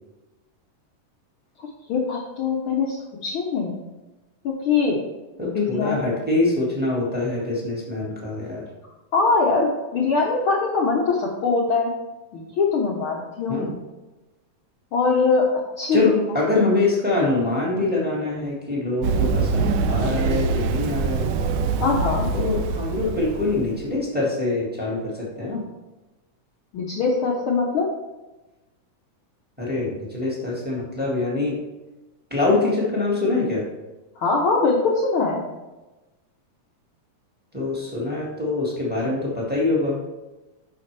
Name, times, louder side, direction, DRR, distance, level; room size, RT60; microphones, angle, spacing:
voice 1, 1.6-3.7 4.4-5.0 5.4-6.0 9.1-11.9 12.3-13.6 14.9-15.5 15.8-16.2 16.5-16.6 21.8-22.3 26.7-27.9 34.2-35.5, left 4 dB, 75° left, -2 dB, 1.2 m, -22 dB
voice 2, 5.4-8.7 13.5-13.8 15.9-21.3 22.3-25.6 29.6-31.6 32.3-33.6 37.5-40.0, left 2 dB, 5° right, -4 dB, 0.7 m, -24 dB
Run, 19.0-23.8, right 4 dB, 80° right, 1.9 m, -24 dB
8.4 x 6.0 x 3.3 m, 1.1 s
omnidirectional pair, 3.5 m